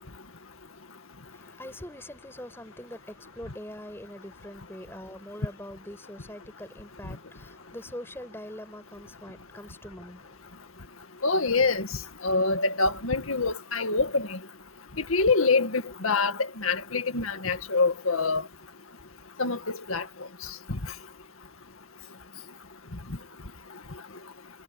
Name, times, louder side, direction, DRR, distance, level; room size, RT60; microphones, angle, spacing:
voice 1, 1.3-10.8, left 1 dB, 10° left, 6.8 m, -43 dB
voice 2, 11.2-11.9 12.2-14.4 15.1-18.5 19.4-20.1 20.7-20.8, left 3 dB, 85° left, 2.0 m, -25 dB
head